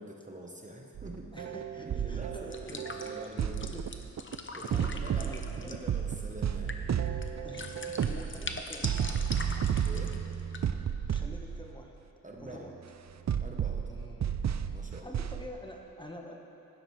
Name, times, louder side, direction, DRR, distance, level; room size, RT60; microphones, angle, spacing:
voice 1, 0.0-1.5 1.8-3.8 4.5-6.8 9.8-10.2 12.2-12.7 13.4-13.9 14.6-15.2, right 1 dB, 25° right, 0 dB, 1.0 m, -45 dB
sound 1, 1.0-4.4 4.6-11.8 12.6-12.7 13.3-15.5, right 8 dB, 55° right, 0.5 m, -33 dB
voice 2, 1.3-3.0 3.4-3.9 4.6-5.9 7.4-8.9 11.1-11.9 12.4-12.7 13.9-14.4 15.0-16.4, left 1 dB, 15° left, 0 dB, 1.2 m, -47 dB
sound 2, 2.5-10.6, left 3 dB, 35° left, 0.8 m, -43 dB
16.0 x 11.5 x 3.2 m, 2.9 s
wide cardioid pair, 90°, 33 cm